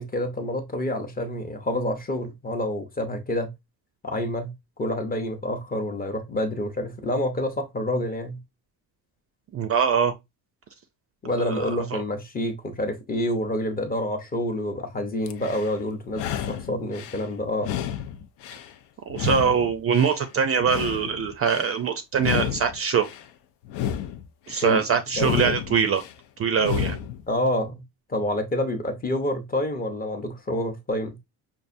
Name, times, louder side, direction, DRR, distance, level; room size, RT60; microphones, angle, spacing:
voice 1, 0.0-3.5 4.0-4.5 4.8-8.4 11.2-17.7 24.6-24.8 25.2-25.6 27.3-27.8 28.1-31.2, left 1 dB, 20° left, 0.6 m, -28 dB
voice 2, 9.5-10.1 11.3-12.0 19.1-23.1 24.5-26.0 26.4-27.0, right 6 dB, 35° right, 0.4 m, -23 dB
sound 1, 15.3-15.7 16.1-17.2 17.6-18.7 19.1-20.2 20.6-21.7 22.1-23.2 23.6-24.7 25.1-26.1 26.6-27.2, left 10 dB, 85° left, 0.6 m, -31 dB
5.4 x 2.5 x 2.5 m
cardioid pair, 135°, 40 cm